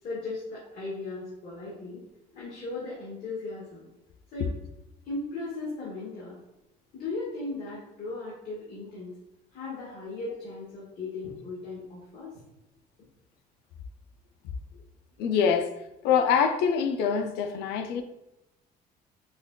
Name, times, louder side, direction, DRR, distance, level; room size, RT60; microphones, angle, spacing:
voice 1, 0.0-2.0 2.3-3.8 4.3-4.5 5.0-6.4 6.9-9.2 9.5-12.3, left 3 dB, 55° left, 1.3 m, -37 dB
voice 2, 15.2-15.7 16.0-18.0, left 7 dB, 85° left, 0.4 m, -24 dB
5.6 x 2.2 x 2.2 m
cardioid pair, 110°, 17 cm